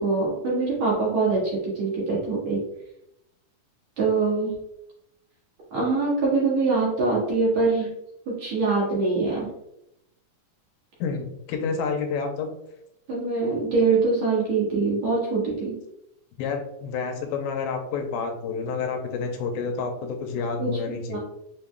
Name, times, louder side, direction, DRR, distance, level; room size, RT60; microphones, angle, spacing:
voice 1, 0.0-2.6 4.0-4.5 5.7-7.9 8.3-9.5 13.1-15.7 20.6-21.2, right 3 dB, 55° right, -6 dB, 2.5 m, -24 dB
voice 2, 11.0-12.5 16.4-21.2, left 5 dB, 90° left, 4 dB, 2.4 m, -29 dB
6.0 x 3.7 x 2.2 m, 0.81 s
omnidirectional pair, 4.1 m